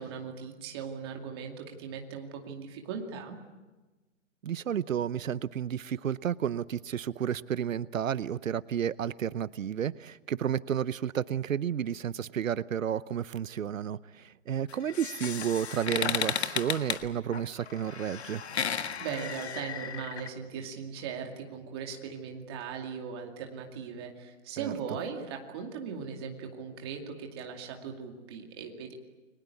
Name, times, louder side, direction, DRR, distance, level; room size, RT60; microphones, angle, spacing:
voice 1, 0.0-3.4 19.0-28.9, right 6 dB, 20° right, 2.4 m, -39 dB
voice 2, 4.4-18.4 24.6-24.7, right 9 dB, 90° right, 0.9 m, -31 dB
sound 1, 14.7-20.3, left 7 dB, 55° left, 1.7 m, -34 dB
29.5 x 23.0 x 8.5 m
hypercardioid pair, 175°, 38 cm